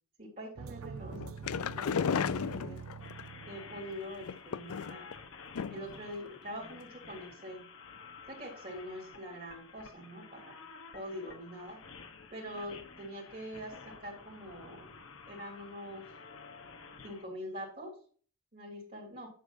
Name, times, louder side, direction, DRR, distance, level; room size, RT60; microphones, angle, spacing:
voice 1, 0.2-1.2 1.5-2.8 3.5-5.0 5.7-7.6 8.3-10.6 10.9-11.8 12.3-14.9 15.3-16.0 17.0-18.0 18.5-19.3, equal, 35° right, -3 dB, 2.9 m, -44 dB
sound 1, 0.6-4.2, right 6 dB, 65° right, 0.4 m, -45 dB
sound 2, 1.1-3.2 4.2-5.1 5.5-6.0 6.3-6.4 6.7-6.8, left 7 dB, 75° left, 0.4 m, -34 dB
sound 3, 3.0-17.3, left 5 dB, 60° left, 1.2 m, -51 dB
10.5 x 7.1 x 2.7 m, 0.43 s
head